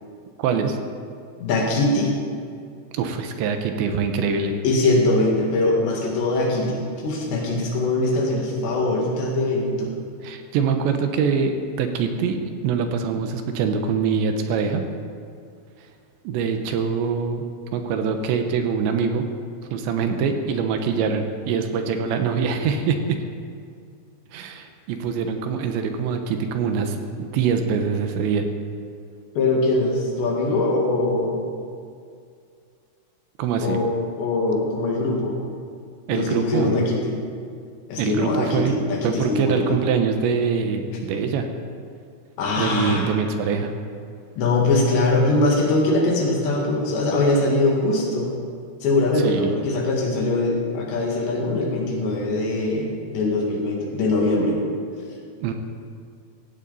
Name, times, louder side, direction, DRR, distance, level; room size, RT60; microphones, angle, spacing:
voice 1, 0.4-0.8 3.0-4.5 10.2-11.5 11.8-14.8 16.2-17.4 17.7-19.2 19.7-23.2 24.3-28.4 33.4-33.8 36.1-36.8 38.0-38.7 39.0-41.5 42.6-43.7 49.2-49.5 55.4-55.5, right 6 dB, 75° right, 6 dB, 3.1 m, -24 dB
voice 2, 1.4-2.2 4.6-10.0 29.4-31.4 33.6-33.9 34.2-35.4 36.1-37.2 37.9-39.8 40.9-41.0 42.4-43.1 44.4-48.3 48.8-54.6, left 2 dB, 70° left, -1 dB, 4.1 m, -22 dB
16.5 x 16.0 x 4.1 m, 2.3 s
omnidirectional pair, 5.5 m